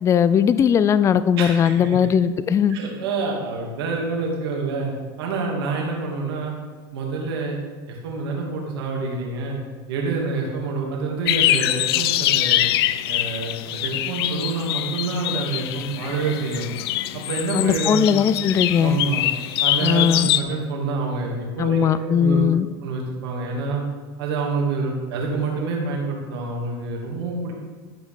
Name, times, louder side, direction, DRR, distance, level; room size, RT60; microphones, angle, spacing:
voice 1, 0.0-2.8 17.5-19.0 19.8-20.3 21.6-22.7, left 8 dB, 25° left, 14 dB, 0.4 m, -19 dB
voice 2, 1.4-2.1 2.7-4.9 5.2-6.5 6.9-7.6 7.9-9.6 9.9-12.6 13.1-16.7 17.1-18.1 18.8-19.2 19.6-22.4 22.8-23.8 24.2-27.5, right 4 dB, 85° right, -1 dB, 2.7 m, -27 dB
sound 1, 11.3-20.4, left 14 dB, 85° left, 0.5 m, -24 dB
12.0 x 5.3 x 5.1 m, 1.4 s
supercardioid pair, 125°, 13 cm